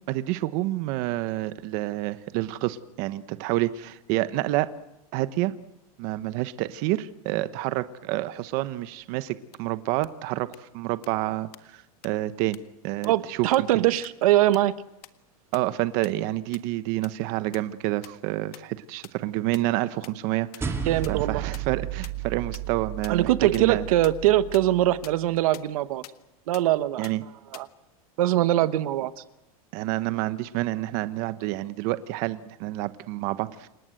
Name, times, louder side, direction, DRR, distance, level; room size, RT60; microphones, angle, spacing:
voice 1, 0.1-4.7 5.1-5.6 6.0-13.8 15.5-20.7 21.1-23.9 27.0-27.2 29.7-33.7, right 16 dB, 45° right, 13 dB, 1.1 m, -28 dB
sound 1, 9.5-9.6 10.0-10.1 10.5-10.6 11.0-11.1 11.5-11.6 12.0-12.1 12.5-12.6 13.0-13.1 13.5-13.6 14.0-14.1 14.5-14.6 15.0-15.1 15.5-15.6 16.0-16.1 16.5-16.6 17.0-17.1 17.5-17.6 18.0-18.1 18.5-18.6 19.0-19.1 19.5-19.6 20.0-20.1 20.5-20.6 21.0-21.1 21.5-21.6 22.0-22.1 22.5-22.6 23.0-23.1 23.5-23.6 24.0-24.1 24.5-24.6 25.0-25.1 25.5-25.6 26.0-26.1 26.5-26.6 27.0-27.1 27.5-27.6, left 14 dB, 85° left, 1.6 m, -42 dB
voice 2, 13.0-14.7 20.8-21.4 23.1-26.0 26.5-27.1 27.5-27.7 28.2-29.2, right 14 dB, 70° right, 13 dB, 1.1 m, -22 dB
sound 2, 20.6-25.2, right 9 dB, 15° right, 2.7 m, -34 dB
29.0 x 18.0 x 7.9 m, 0.90 s
supercardioid pair, 155°, 19 cm